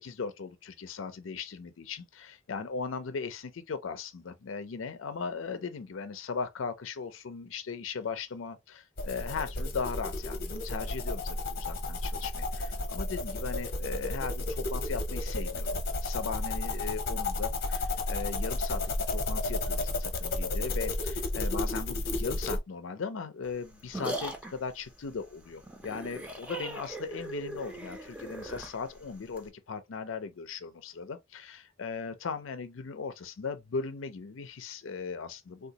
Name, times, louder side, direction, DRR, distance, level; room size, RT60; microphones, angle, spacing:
voice 1, 0.0-18.8 19.1-35.7, left 5 dB, 80° left, 0.5 m, -38 dB
sound 1, 9.0-22.6, left 2 dB, 50° left, 0.8 m, -32 dB
sound 2, 23.4-29.5, right 1 dB, 5° right, 0.6 m, -40 dB
3.7 x 2.3 x 2.8 m
head